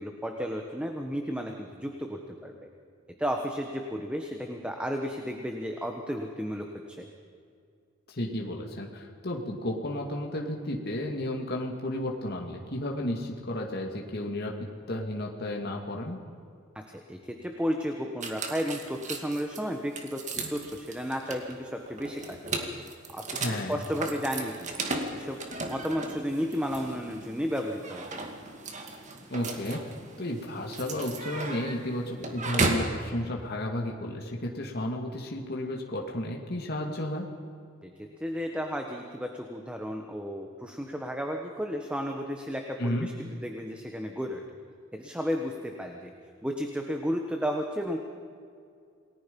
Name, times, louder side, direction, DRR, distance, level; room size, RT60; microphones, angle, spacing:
voice 1, 0.0-2.5 3.2-7.0 16.7-16.8 17.1-22.7 23.1-25.4 25.7-28.2 37.8-44.4 44.9-46.1 46.4-48.0, equal, 5° right, 3 dB, 1.3 m, -33 dB
voice 2, 8.1-14.5 14.9-16.2 23.4-23.8 29.3-29.8 30.2-37.3 42.8-43.1, left 1 dB, 50° left, 0 dB, 2.2 m, -33 dB
sound 1, 18.2-33.0, right 3 dB, 35° right, 2.2 m, -35 dB
28.5 x 19.5 x 5.4 m, 2.3 s
head